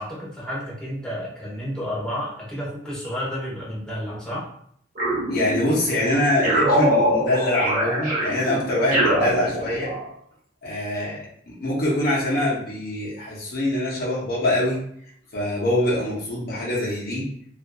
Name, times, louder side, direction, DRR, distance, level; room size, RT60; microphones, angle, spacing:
voice 1, 0.0-4.5, equal, 5° left, -8 dB, 0.9 m, -31 dB
sound 1, 5.0-5.9 6.4-10.1, equal, 50° right, 0.8 m, -23 dB
voice 2, 5.3-9.9 10.6-14.8 15.3-17.3, left 1 dB, 60° left, -5 dB, 0.8 m, -24 dB
2.6 x 2.4 x 2.3 m, 0.66 s
head